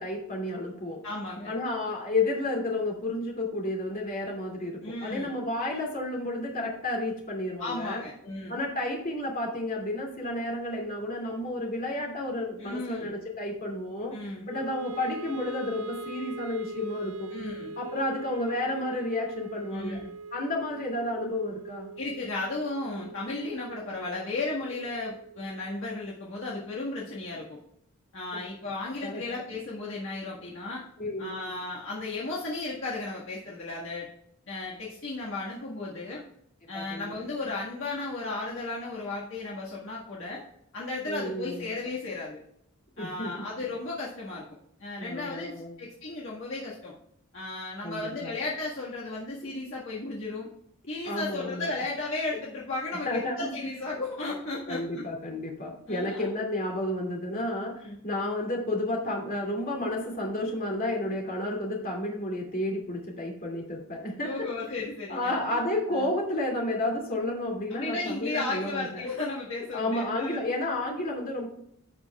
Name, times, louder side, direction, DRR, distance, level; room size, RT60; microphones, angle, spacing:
voice 1, 0.0-1.0 1.5-8.0 8.5-14.1 14.5-17.3 17.8-20.0 20.3-21.9 28.3-28.4 29.0-29.2 31.0-31.3 36.7-37.1 41.1-41.7 43.0-43.3 45.0-45.8 47.8-48.4 51.0-51.7 53.0-53.5 54.7-64.3 64.7-64.8 65.1-68.9 69.7-71.5, left 1 dB, 40° left, -1 dB, 2.6 m, -31 dB
voice 2, 1.0-1.5 4.8-5.3 7.6-8.6 12.6-13.1 14.1-14.5 17.3-17.7 19.7-20.1 22.0-27.6 28.1-30.8 31.2-34.1 34.5-36.2 36.7-40.4 40.7-42.4 43.0-44.4 44.8-46.9 47.3-50.5 50.9-55.1 55.9-56.3 57.8-57.9 64.2-65.6 65.9-66.0 67.7-70.4, left 2 dB, 60° left, -5 dB, 1.7 m, -34 dB
Wind instrument woodwind instrument, 14.5-26.7, right 2 dB, 85° right, 0.5 m, -42 dB
15.5 x 5.3 x 2.4 m, 0.74 s
head